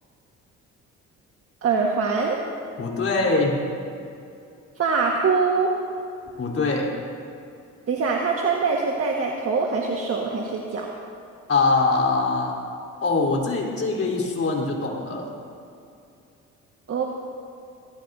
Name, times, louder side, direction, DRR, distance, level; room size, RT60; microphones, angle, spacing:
voice 1, 1.6-2.4 4.8-5.7 7.9-10.9 16.9-17.0, right 4 dB, 50° right, -1 dB, 1.6 m, -23 dB
voice 2, 2.8-3.6 6.4-6.9 11.5-12.5 13.0-15.3, left 3 dB, 50° left, -2 dB, 3.9 m, -23 dB
22.5 x 19.0 x 2.7 m, 2.6 s
cardioid pair, 90°, 30 cm